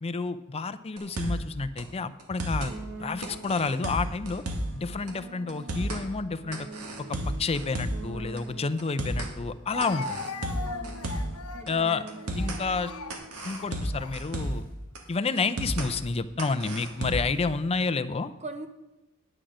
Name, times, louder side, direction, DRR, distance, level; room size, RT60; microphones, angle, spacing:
voice 1, 0.0-2.7 3.0-4.4 4.7-6.7 7.1-10.2 11.7-12.1 12.4-12.9 13.4-14.6 15.1-18.3, left 4 dB, 25° left, 12 dB, 0.5 m, -30 dB
sound 1, 1.0-1.5 1.8-1.9 2.2-2.7 3.2-4.8 5.1-5.2 5.5-6.0 6.5-8.1 8.4-8.5 8.8-9.3 9.8-11.4 11.7-11.8 12.1-12.6 13.1-14.7 15.0-15.1 15.4-15.9 16.4-17.4, right 1 dB, 80° right, 1.9 m, -32 dB
sound 2, 2.7-3.7 4.5-9.0 9.8-13.2, right 3 dB, 65° right, 1.6 m, -45 dB
Speech, 8.6-8.7 9.7-14.6 15.4-15.6 16.6-17.2, left 4 dB, 75° left, 0.8 m, -40 dB
voice 2, 10.6-11.1 11.5-12.2 18.4-18.7, right 2 dB, 30° right, 7 dB, 0.7 m, -42 dB
9.8 x 8.7 x 5.0 m, 1.0 s
head